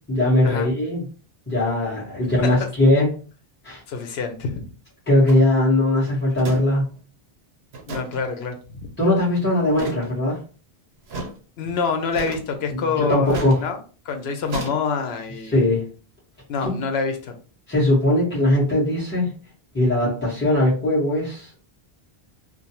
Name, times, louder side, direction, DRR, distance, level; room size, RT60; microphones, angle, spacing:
voice 1, 0.1-1.0 1.5-3.1 3.6-3.8 5.1-6.8 9.0-10.4 12.7-13.6 15.5-15.9 16.6-16.8 17.7-19.3 19.7-21.5, left 1 dB, 10° left, -8 dB, 1.1 m, -20 dB
voice 2, 3.9-4.6 7.9-8.9 11.6-13.8 14.1-15.7 16.5-17.4 20.0-20.1, left 5 dB, 80° left, 6 dB, 0.8 m, -27 dB
sound 1, 5.3-5.5 6.4-6.6 6.9-7.0 7.7-8.2 9.7-10.1 11.1-11.3 12.1-12.6 13.3-13.6 14.5-14.7, right 3 dB, 75° right, 0.9 m, -32 dB
2.5 x 2.1 x 2.8 m, 0.38 s
omnidirectional pair, 1.1 m